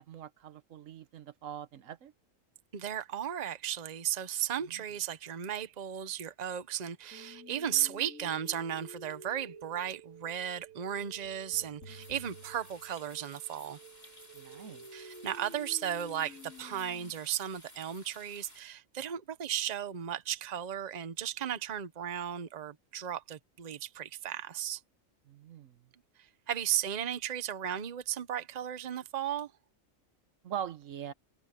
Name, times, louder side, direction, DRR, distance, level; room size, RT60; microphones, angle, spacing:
voice 1, 0.0-2.1 4.7-4.8 14.3-14.8 25.3-25.8 30.4-31.1, right 9 dB, 75° right, 1.2 m, -42 dB
voice 2, 2.7-13.8 14.9-24.8 26.2-29.5, right 10 dB, 35° right, 0.8 m, -35 dB
sound 1, 7.1-17.1, right 1 dB, 75° left, 3.7 m, -51 dB
sound 2, 11.9-18.6, left 1 dB, 30° left, 5.1 m, -56 dB
omnidirectional pair, 1.4 m